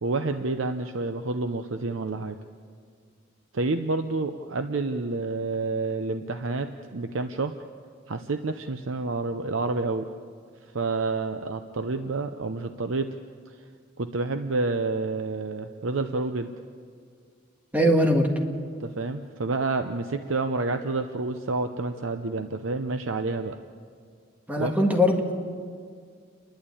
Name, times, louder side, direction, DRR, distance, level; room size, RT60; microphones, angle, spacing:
voice 1, 0.0-2.4 3.5-7.6 8.1-10.1 10.7-13.2 13.5-13.6 14.0-16.5 18.8-23.6 24.6-24.7, right 3 dB, 80° right, 7 dB, 0.8 m, -29 dB
voice 2, 17.7-18.3 24.5-25.3, equal, 10° right, 2 dB, 1.8 m, -21 dB
29.5 x 11.5 x 8.6 m, 2.1 s
head